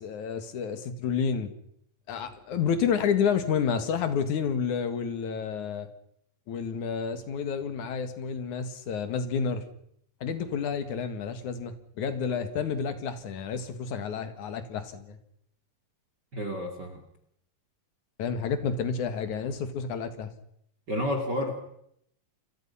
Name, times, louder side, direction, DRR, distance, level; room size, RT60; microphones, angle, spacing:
voice 1, 0.0-1.5 2.1-5.9 6.5-9.6 10.2-15.2 18.2-20.3, left 6 dB, 60° left, 10 dB, 3.2 m, -30 dB
voice 2, 16.3-17.0 20.9-21.6, left 1 dB, 35° right, 5 dB, 2.6 m, -30 dB
29.0 x 23.0 x 5.7 m, 0.73 s
omnidirectional pair, 4.0 m